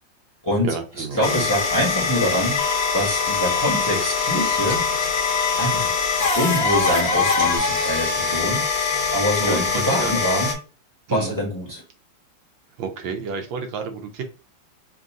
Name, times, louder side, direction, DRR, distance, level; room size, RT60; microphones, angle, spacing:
voice 1, 0.6-1.4 9.4-10.1 11.1-11.4 12.8-14.2, right 5 dB, 85° right, 4 dB, 1.5 m, -30 dB
voice 2, 1.1-2.6 2.9-4.8 5.6-5.9 6.3-8.7 9.1-10.5 11.1-11.8, equal, 10° left, -3 dB, 1.1 m, -24 dB
sound 1, 1.2-10.5, left 5 dB, 55° left, 1.7 m, -23 dB
sound 2, 2.6-7.6, left 5 dB, 85° left, 0.7 m, -29 dB
3.8 x 2.6 x 3.6 m, 0.34 s
omnidirectional pair, 2.0 m